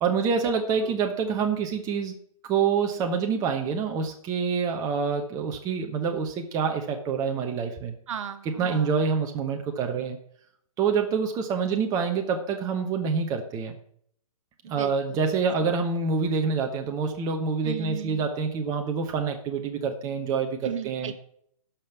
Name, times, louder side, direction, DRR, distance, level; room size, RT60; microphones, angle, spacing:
voice 1, 0.0-2.1 2.5-7.9 8.6-10.2 10.8-13.7 14.7-21.1, right 5 dB, 20° right, 4 dB, 1.0 m, -26 dB
voice 2, 8.1-8.9 14.6-15.2 15.6-15.7 17.6-18.3 20.6-21.1, right 8 dB, 55° right, 10 dB, 1.3 m, -36 dB
12.5 x 5.3 x 5.7 m, 0.66 s
hypercardioid pair, 145°, 19 cm